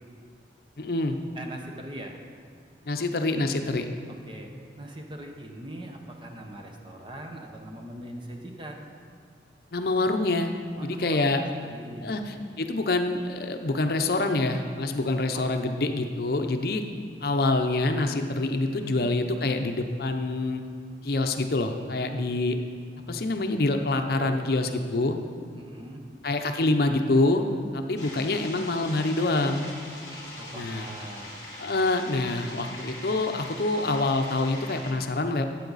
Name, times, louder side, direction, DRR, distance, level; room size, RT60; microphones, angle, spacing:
voice 1, 0.8-1.2 2.9-3.9 9.7-10.5 10.8-11.4 12.0-16.8 17.2-20.6 21.0-22.6 23.1-25.2 26.2-27.4 27.7-29.7 30.5-30.9 31.6-35.5, left 2 dB, 60° left, 6 dB, 0.6 m, -26 dB
voice 2, 1.3-2.2 4.3-4.5 4.8-8.9 10.8-12.1 15.3-15.5 18.6-19.0 24.2-24.4 25.5-26.0 30.4-31.4, right 1 dB, 30° right, 2 dB, 0.9 m, -41 dB
sound 1, 28.0-34.9, left 1 dB, 20° left, 2.4 m, -42 dB
13.0 x 8.5 x 4.1 m, 2.2 s
head